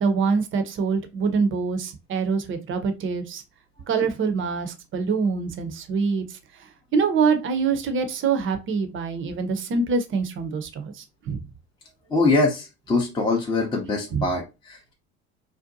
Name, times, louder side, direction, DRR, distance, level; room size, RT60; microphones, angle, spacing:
voice 1, 0.0-3.4 3.9-6.6 6.9-11.4 14.1-14.2, right 5 dB, 30° right, 8 dB, 0.6 m, -25 dB
voice 2, 12.1-14.9, left 3 dB, 10° left, 0 dB, 0.5 m, -23 dB
2.6 x 2.1 x 2.5 m, 0.26 s
hypercardioid pair, 65°, 39 cm